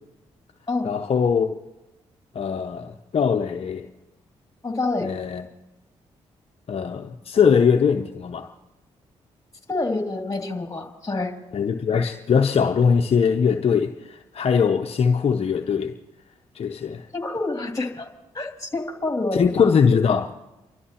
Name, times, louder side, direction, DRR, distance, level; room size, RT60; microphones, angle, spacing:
voice 1, 0.8-1.6 2.3-3.9 5.0-5.4 6.7-8.5 11.5-15.9 16.5-17.1 19.3-20.3, left 6 dB, 50° left, 0.8 m, -21 dB
voice 2, 4.6-5.1 9.7-11.3 17.1-18.1 18.3-19.7, left 2 dB, 25° left, 2.7 m, -27 dB
29.5 x 12.5 x 2.9 m
hypercardioid pair, 45°, 13 cm